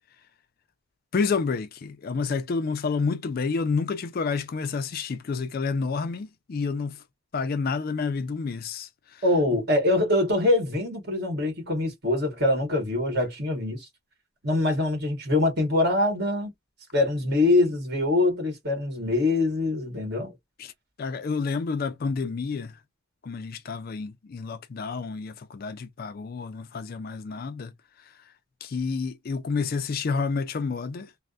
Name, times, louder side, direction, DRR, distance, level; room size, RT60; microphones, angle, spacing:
voice 1, 1.1-7.0 7.3-9.2 20.6-20.7 21.0-22.7 23.2-27.7 28.6-31.1, left 4 dB, 45° left, 0.3 m, -29 dB
voice 2, 9.2-13.9 14.4-16.5 16.9-20.3, left 2 dB, 50° right, 1.5 m, -24 dB
3.2 x 2.0 x 2.4 m
head